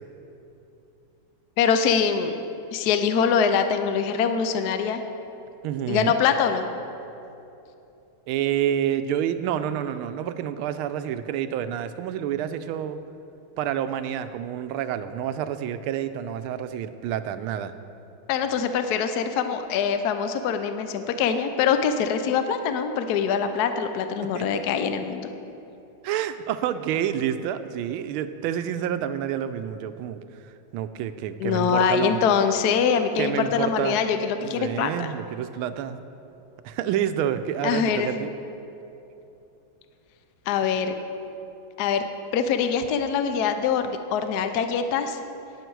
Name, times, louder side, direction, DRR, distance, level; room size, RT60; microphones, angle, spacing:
voice 1, 1.6-2.4 2.7-5.0 5.9-6.6 18.3-25.3 31.4-35.1 37.6-38.1 40.5-40.9 41.8-42.0 42.3-45.2, left 7 dB, 75° left, 8 dB, 0.9 m, -23 dB
voice 2, 5.6-6.1 8.3-13.0 13.6-17.7 24.3-24.7 26.0-30.2 30.7-32.2 33.2-34.1 34.4-36.0 36.6-38.3, right 10 dB, 80° right, 11 dB, 1.4 m, -28 dB
18.0 x 7.6 x 4.6 m, 2.8 s
omnidirectional pair, 2.4 m